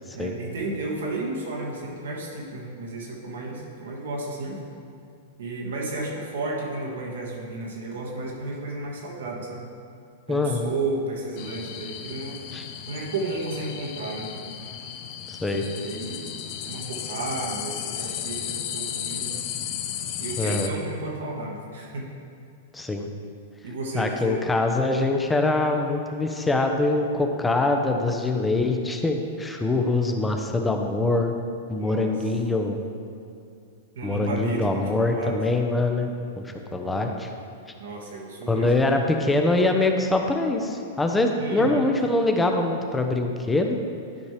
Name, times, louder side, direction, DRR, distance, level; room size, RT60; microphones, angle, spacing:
voice 1, 0.1-4.6 5.4-9.7 10.3-12.4 12.9-14.3 15.8-16.3 16.7-19.4 20.2-22.1 23.6-24.5 31.8-32.1 33.9-35.4 37.8-38.9 41.4-41.8, right 2 dB, 75° right, -1 dB, 1.6 m, -33 dB
voice 2, 10.3-10.7 12.5-12.6 15.3-15.6 20.4-20.7 22.7-23.1 23.9-31.3 31.7-32.8 34.0-36.1 36.4-37.3 38.5-43.8, left 2 dB, 10° left, 3 dB, 0.8 m, -24 dB
sound 1, 11.4-20.7, left 9 dB, 50° left, 0.6 m, -34 dB
11.5 x 5.3 x 3.3 m, 2.5 s
hypercardioid pair, 110°, 0 cm